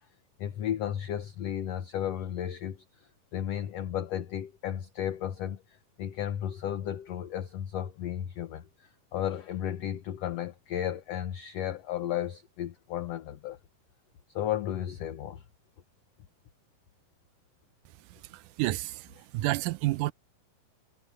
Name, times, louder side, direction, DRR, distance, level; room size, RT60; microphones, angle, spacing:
voice 1, 0.4-13.6 14.3-15.4, left 10 dB, 65° left, 1.7 m, -34 dB
voice 2, 18.0-20.1, right 19 dB, 80° right, 2.0 m, -31 dB
omnidirectional pair, 3.9 m